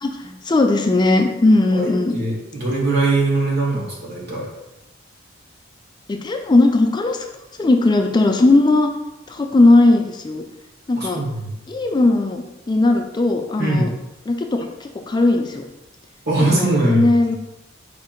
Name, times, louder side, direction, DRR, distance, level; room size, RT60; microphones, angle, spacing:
voice 1, 0.0-2.1 6.1-7.3 7.6-8.9 9.3-10.4 10.9-11.2 11.7-13.9 14.3-15.6 16.5-17.4, left 2 dB, 20° left, 4 dB, 0.3 m, -17 dB
voice 2, 1.7-4.5 11.0-11.5 13.6-13.9 16.3-17.1, right 2 dB, 60° right, -3 dB, 1.4 m, -21 dB
4.6 x 2.5 x 4.4 m, 0.96 s
head